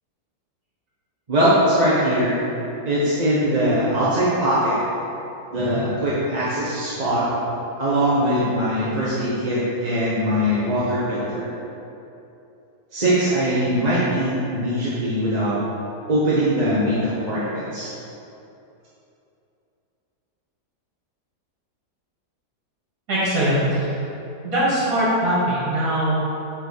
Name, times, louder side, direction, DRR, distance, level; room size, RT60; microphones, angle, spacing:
voice 1, 1.3-2.4 2.8-4.8 5.5-7.3 7.8-11.5 12.9-15.6 16.1-17.9, equal, 30° right, -9 dB, 1.0 m, -21 dB
voice 2, 23.1-23.9 24.4-26.2, right 1 dB, 55° right, -9 dB, 2.4 m, -21 dB
5.9 x 4.5 x 6.5 m, 2.8 s
omnidirectional pair, 1.8 m